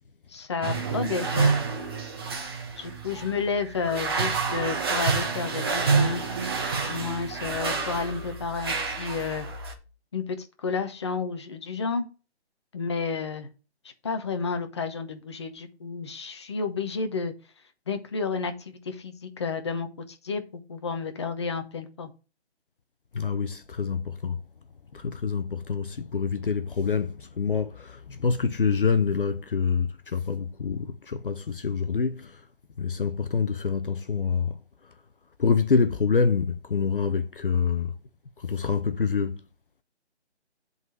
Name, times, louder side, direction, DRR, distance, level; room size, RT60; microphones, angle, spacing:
voice 1, 0.3-1.6 2.8-6.2 6.8-9.5 10.1-12.0 12.7-13.5 14.0-17.3 17.9-22.1, left 5 dB, 25° left, 0.8 m, -31 dB
sound 1, 0.6-9.7, right 4 dB, 20° right, 1.1 m, -28 dB
voice 2, 23.1-24.4 24.9-32.4 32.8-34.6 35.4-37.9 38.4-39.4, left 5 dB, 50° left, 0.8 m, -26 dB
8.1 x 4.1 x 6.1 m
hypercardioid pair, 165°, 34 cm